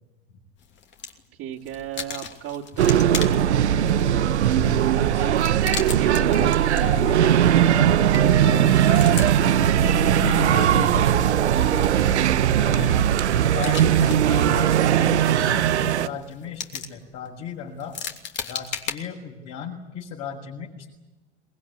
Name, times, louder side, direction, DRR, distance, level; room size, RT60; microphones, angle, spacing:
sound 1, 0.6-1.3 1.6-19.0, left 7 dB, 35° left, 2.9 m, -38 dB
voice 1, 1.4-3.6 5.8-6.9 7.8-8.3, right 11 dB, 45° right, -2 dB, 2.8 m, -34 dB
sound 2, 2.8-16.1, right 10 dB, 90° right, 1.1 m, -19 dB
voice 2, 4.9-5.6 6.0-7.3 7.8-9.7 10.2-12.2 12.6-13.0 13.5-18.0 18.5-20.9, left 7 dB, 55° left, -2 dB, 6.7 m, -36 dB
23.5 x 21.0 x 9.8 m, 1.0 s
hypercardioid pair, 110°, 33 cm